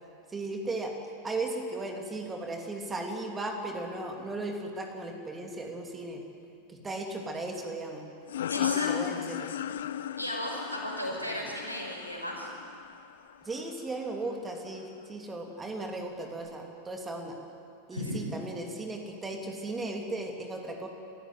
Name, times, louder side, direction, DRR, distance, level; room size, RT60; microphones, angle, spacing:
voice 1, 0.3-0.9 1.2-6.2 6.7-8.1 8.6-9.5 11.1-11.3 13.4-17.4 17.9-20.9, right 2 dB, 15° right, 2 dB, 2.9 m, -36 dB
sound 1, 8.3-13.6, left 10 dB, 60° left, 0.7 m, -35 dB
voice 2, 8.5-8.9 10.2-12.5 17.9-18.2, left 1 dB, 90° right, 0 dB, 5.7 m, -35 dB
28.5 x 15.0 x 9.5 m, 2.5 s
figure-of-eight pair, 90°, 0 cm